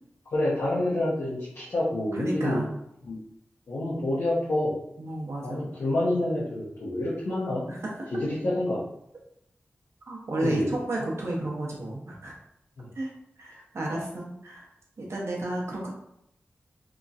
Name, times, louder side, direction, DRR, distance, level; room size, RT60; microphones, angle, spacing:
voice 1, 0.3-2.6 3.0-3.2 3.7-4.7 5.4-7.7 8.2-8.8 10.4-10.7 12.8-12.9, left 1 dB, 80° left, -8 dB, 0.7 m, -27 dB
voice 2, 2.1-2.7 5.0-5.7 7.7-7.9 10.1-12.3 12.9-14.7 15.0-15.9, right 1 dB, 70° right, -3 dB, 0.8 m, -32 dB
2.9 x 2.5 x 2.4 m, 0.78 s
cardioid pair, 55°, 5 cm